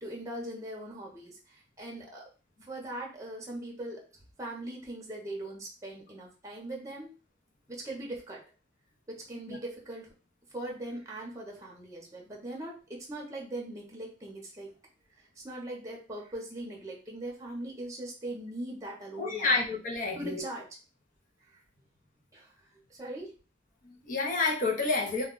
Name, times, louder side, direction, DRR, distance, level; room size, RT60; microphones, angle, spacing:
voice 1, 0.0-2.3 2.6-4.1 4.4-7.2 7.7-8.4 9.1-10.1 10.5-14.7 15.2-19.6 20.1-20.7 21.5-21.6 22.3-23.3, right 1 dB, 15° right, -2 dB, 0.7 m, -40 dB
voice 2, 19.2-20.4 23.8-25.3, left 3 dB, 45° left, 0 dB, 0.7 m, -29 dB
2.3 x 2.2 x 3.7 m, 0.34 s
head